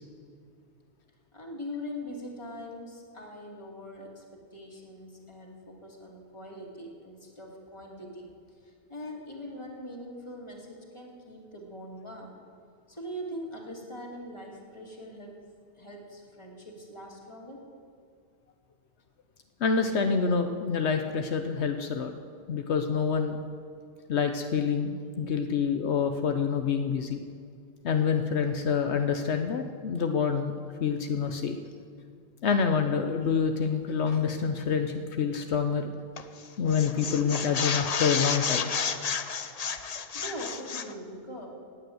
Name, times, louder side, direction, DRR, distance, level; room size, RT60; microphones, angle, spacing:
voice 1, 1.3-8.3 8.6-12.4 12.9-15.5 15.8-17.7 40.1-41.5, equal, 25° left, 0 dB, 2.5 m, -42 dB
voice 2, 19.6-22.1 22.5-23.4 24.1-27.2 27.8-30.5 30.8-31.6 32.4-35.9 36.6-38.6, left 6 dB, 80° left, 6 dB, 1.1 m, -27 dB
sound 1, 36.2-36.4 36.7-40.9, left 6 dB, 40° left, 0.7 m, -31 dB
18.0 x 9.4 x 7.8 m, 2.2 s
omnidirectional pair, 1.1 m